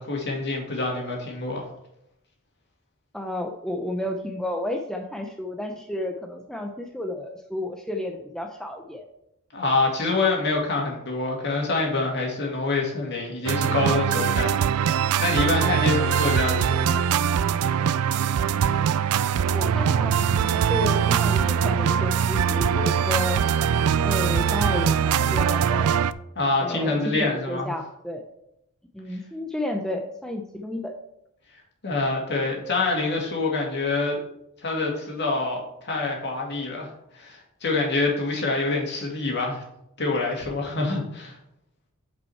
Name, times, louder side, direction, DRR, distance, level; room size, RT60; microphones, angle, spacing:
voice 1, 0.0-1.6 9.5-17.0 26.4-27.7 31.8-34.2 34.6-39.6 40.0-41.4, left 3 dB, 50° left, 0 dB, 2.2 m, -26 dB
voice 2, 3.1-9.1 19.5-23.4 24.0-25.9 26.6-28.2 28.9-30.9, left 1 dB, 5° left, 3 dB, 0.5 m, -31 dB
sound 1, 13.4-26.1, right 8 dB, 85° right, 0.4 m, -22 dB
8.6 x 5.4 x 4.5 m, 0.82 s
head